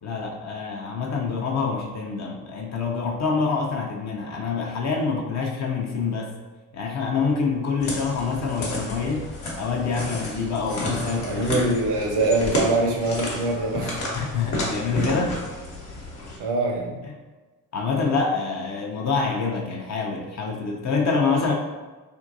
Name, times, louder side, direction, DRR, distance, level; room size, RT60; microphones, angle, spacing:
voice 1, 0.0-6.3 6.7-9.3 9.6-11.5 12.0-12.2 14.1-15.4 17.7-21.5, left 4 dB, 35° left, 0 dB, 0.6 m, -26 dB
sound 1, 7.8-16.4, left 1 dB, 60° left, 1.1 m, -31 dB
voice 2, 11.0-14.1 16.4-17.0, right 2 dB, 55° right, 1 dB, 0.8 m, -24 dB
3.7 x 2.5 x 2.6 m, 1.3 s
figure-of-eight pair, 45°, 48 cm